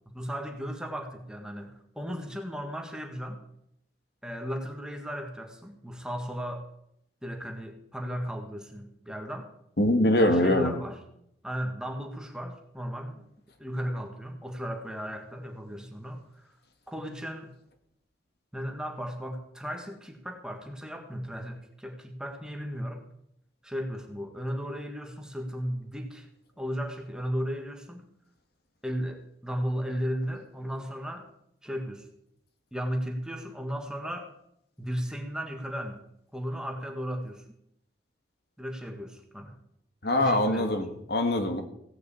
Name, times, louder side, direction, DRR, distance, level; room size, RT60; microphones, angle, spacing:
voice 1, 0.1-3.4 4.2-6.7 7.2-9.5 10.2-11.0 11.4-13.2 13.6-16.5 16.9-17.5 18.5-23.0 23.6-26.3 26.6-28.0 28.8-31.3 31.6-32.1 32.7-34.3 34.8-36.0 36.3-37.4 38.6-39.6 40.2-40.7, equal, 5° right, 3 dB, 1.8 m, -35 dB
voice 2, 9.8-10.7 40.0-41.6, left 1 dB, 60° left, 6 dB, 1.8 m, -23 dB
17.0 x 6.7 x 8.4 m, 0.75 s
head